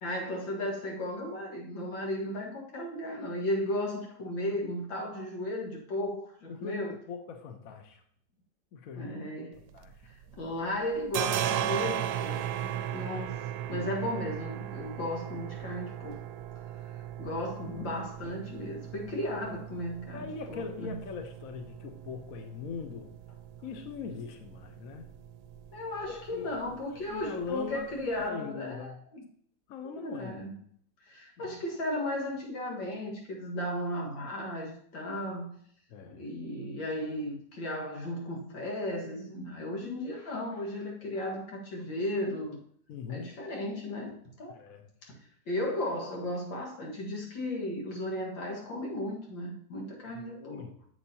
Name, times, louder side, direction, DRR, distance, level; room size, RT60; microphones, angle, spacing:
voice 1, 0.0-6.9 8.9-9.6 10.4-13.4 13.7-16.2 17.2-20.9 25.7-29.2 29.8-30.6 31.0-35.6 36.2-42.6 43.1-44.6 45.0-45.2 45.5-50.7, left 1 dB, 90° left, 2.5 m, -35 dB
voice 2, 6.5-8.0 8.7-9.1 9.7-10.0 20.1-23.1 23.6-25.1 26.1-26.5 26.9-29.0 29.7-30.6 31.4-31.6 35.9-36.3 42.9-43.3 44.5-44.9 50.1-50.7, left 6 dB, 55° left, 1.2 m, -41 dB
sound 1, 9.6-10.5 10.7-28.3, right 10 dB, 70° right, 1.0 m, -38 dB
10.5 x 7.3 x 2.9 m
omnidirectional pair, 2.0 m